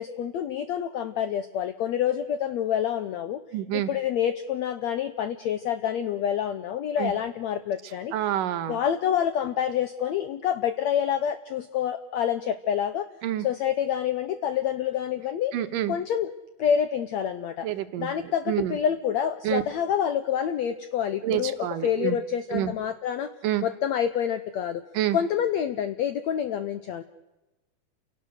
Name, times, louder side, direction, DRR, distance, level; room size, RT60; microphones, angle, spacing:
voice 1, 0.0-3.4 3.7-8.1 8.7-13.1 13.4-15.5 15.9-16.3 16.6-17.7 18.0-23.3 23.6-24.8 25.1-27.0, left 9 dB, 80° left, 12 dB, 1.6 m, -27 dB
voice 2, 3.5-3.9 7.0-7.1 8.1-8.8 13.2-13.5 15.5-16.0 17.6-18.8 19.4-19.6 21.2-22.2 22.5-22.7 23.4-23.7 24.9-25.2, right 12 dB, 70° right, 9 dB, 2.6 m, -28 dB
29.0 x 17.5 x 6.7 m, 1.0 s
omnidirectional pair, 4.2 m